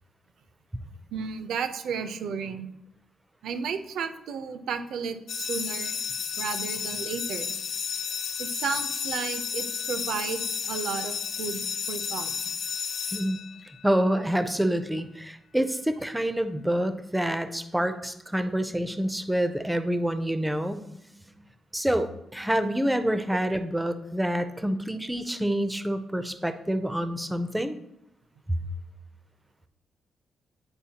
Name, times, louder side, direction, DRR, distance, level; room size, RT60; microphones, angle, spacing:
voice 1, 1.1-2.7 3.4-6.0 6.4-7.6 8.4-11.6 11.9-12.3, right 6 dB, 80° right, 9 dB, 0.5 m, -33 dB
sound 1, 5.3-13.9, left 7 dB, 55° left, 0.4 m, -32 dB
voice 2, 13.8-20.8 21.7-27.8 28.5-28.6, equal, 5° right, 9 dB, 0.4 m, -27 dB
8.8 x 4.4 x 2.8 m, 0.82 s
cardioid pair, 140°, 0 cm